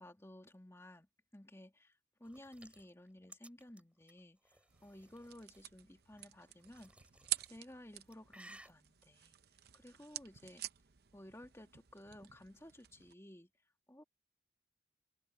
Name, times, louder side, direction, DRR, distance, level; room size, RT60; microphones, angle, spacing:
voice 1, 0.0-6.9 7.5-9.4 9.7-10.6 11.1-13.5 13.9-14.0, left 1 dB, 15° left, 2.2 m, -55 dB
sound 1, 2.2-5.6 6.2-7.5 7.9-8.7, right 1 dB, 5° right, 4.3 m, -59 dB
sound 2, 4.7-13.1, right 14 dB, 55° right, 0.8 m, -48 dB
head